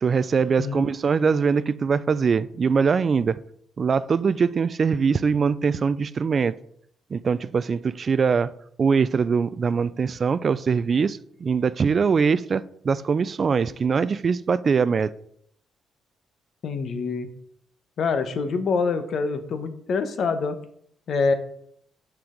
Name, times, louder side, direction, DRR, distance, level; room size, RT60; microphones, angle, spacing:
voice 1, 0.0-3.4 3.8-6.5 7.1-8.5 8.8-15.1, right 5 dB, 45° right, 0.3 m, -22 dB
voice 2, 16.6-17.3 18.0-20.6 21.1-21.3, left 4 dB, 60° left, 0.9 m, -25 dB
6.8 x 5.9 x 3.7 m
cardioid pair, 90°, 0 cm